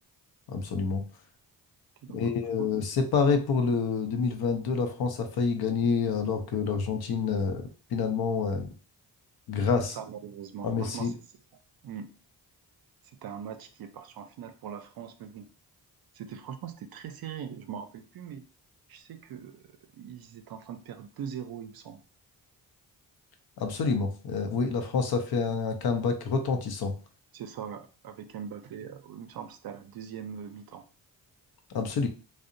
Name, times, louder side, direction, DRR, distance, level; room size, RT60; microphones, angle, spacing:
voice 1, 0.5-1.0 2.1-8.7 9.5-9.9 10.6-11.1 23.6-26.9 31.7-32.1, left 5 dB, 60° left, 6 dB, 0.6 m, -28 dB
voice 2, 9.8-11.1 11.8-12.1 13.2-15.5 16.1-18.4 18.9-22.0 27.3-30.8, right 8 dB, 60° right, 7 dB, 0.5 m, -41 dB
2.7 x 2.0 x 2.5 m, 0.38 s
cardioid pair, 60°, 42 cm